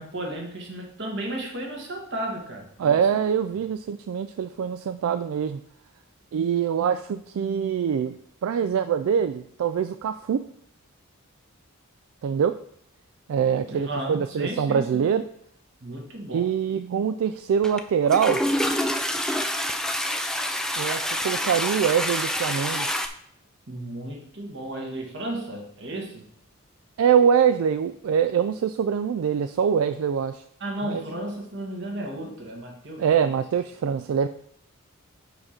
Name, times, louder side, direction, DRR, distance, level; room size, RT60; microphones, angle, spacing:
voice 1, 0.0-3.0 3.5-3.6 13.7-15.1 15.8-16.6 23.7-26.2 30.6-33.4, right 1 dB, 55° right, 1 dB, 1.5 m, -34 dB
voice 2, 2.8-5.6 6.3-8.2 8.4-10.4 12.2-12.5 13.3-15.2 16.3-18.4 20.8-22.9 27.0-30.4 30.8-31.0 33.0-34.3, right 7 dB, 75° right, 9 dB, 0.3 m, -24 dB
Toilet flush, 17.6-17.8 18.1-23.1, left 1 dB, 5° left, 0.3 m, -27 dB
4.9 x 4.8 x 5.8 m, 0.68 s
head